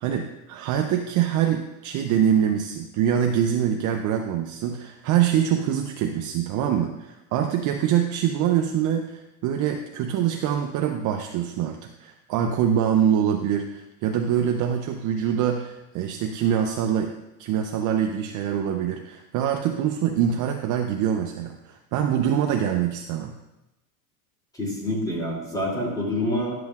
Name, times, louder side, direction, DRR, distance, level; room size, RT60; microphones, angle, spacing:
voice 1, 0.0-17.1 17.4-23.4, right 9 dB, 40° right, 4 dB, 0.5 m, -24 dB
voice 2, 24.5-26.6, left 1 dB, 10° left, -3 dB, 2.6 m, -27 dB
11.5 x 7.7 x 2.4 m, 0.96 s
supercardioid pair, 125°, 48 cm